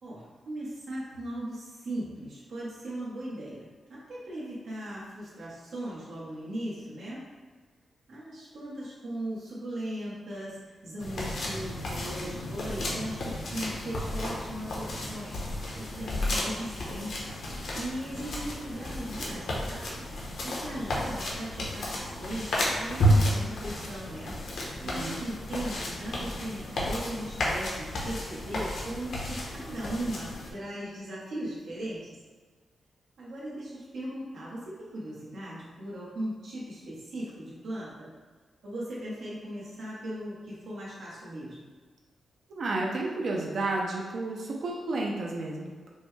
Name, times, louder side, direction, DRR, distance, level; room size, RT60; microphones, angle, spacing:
voice 1, 0.0-7.2 8.1-20.0 20.4-24.3 24.8-32.1 33.2-38.1 38.6-41.7, right 1 dB, 85° right, -7 dB, 1.0 m, -38 dB
sound 1, 11.0-30.5, equal, 80° left, 0.9 m, -32 dB
voice 2, 42.5-45.9, right 2 dB, 65° right, -1 dB, 0.5 m, -31 dB
5.2 x 2.2 x 3.1 m, 1.4 s
wide cardioid pair, 120°, 0 cm